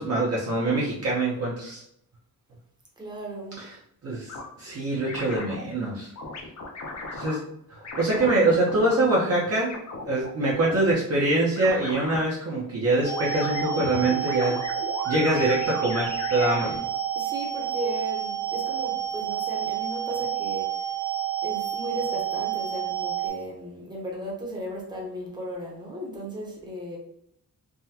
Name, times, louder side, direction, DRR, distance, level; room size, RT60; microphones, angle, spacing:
voice 1, 0.0-1.8 4.0-6.1 7.1-7.4 7.7-9.7 10.0-14.6 15.1-16.8, right 2 dB, 45° right, -5 dB, 0.7 m, -24 dB
voice 2, 3.0-3.7 17.1-20.9 21.4-27.0, right 1 dB, 10° right, -3 dB, 0.8 m, -36 dB
sound 1, 4.3-4.5 5.1-5.6 6.2-7.4 7.8-9.0 9.7-10.9 11.6-12.3 13.0-16.8, left 3 dB, 50° left, 0.6 m, -37 dB
sound 2, 13.0-23.3, right 10 dB, 80° left, 1.3 m, -29 dB
3.5 x 2.2 x 2.8 m, 0.75 s
wide cardioid pair, 170°, 36 cm